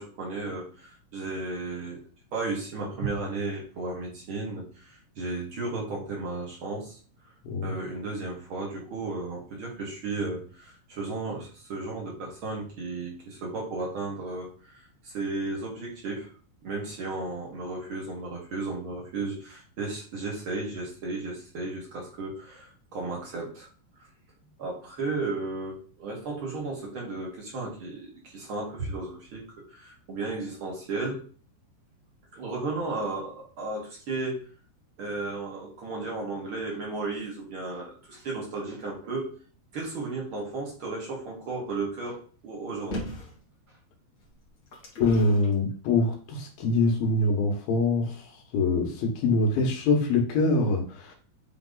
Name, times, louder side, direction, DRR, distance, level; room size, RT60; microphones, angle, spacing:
voice 1, 0.0-2.0 2.3-7.0 7.6-16.3 16.6-23.7 24.0-24.1 24.6-31.2 32.3-34.4 35.0-39.3 39.7-43.0, right 3 dB, 45° right, -2 dB, 2.1 m, -34 dB
sound 1, 42.9-43.4 44.2-45.5 46.3-46.4, equal, 50° left, 1.0 m, -37 dB
voice 2, 45.0-51.2, left 3 dB, 70° left, 2 dB, 3.1 m, -24 dB
8.6 x 3.4 x 4.0 m, 0.42 s
omnidirectional pair, 4.4 m